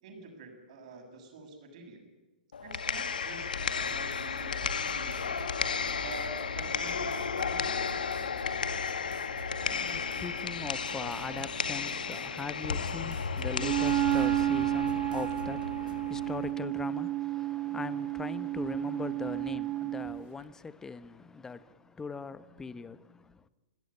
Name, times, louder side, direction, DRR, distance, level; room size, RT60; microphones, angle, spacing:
voice 1, 0.0-2.1 2.6-3.5 3.8-5.3 6.0-8.0, right 3 dB, 50° right, 7.3 m, -46 dB
sound 1, 2.5-16.5, left 6 dB, 75° left, 1.8 m, -34 dB
sound 2, 3.6-16.1, right 5 dB, 80° right, 2.0 m, -48 dB
voice 2, 9.7-23.5, left 4 dB, 10° left, 1.1 m, -40 dB
Wind instrument woodwind instrument, 13.6-20.2, right 16 dB, 35° right, 1.1 m, -31 dB
24.0 x 18.0 x 9.9 m
figure-of-eight pair, 115°, 5 cm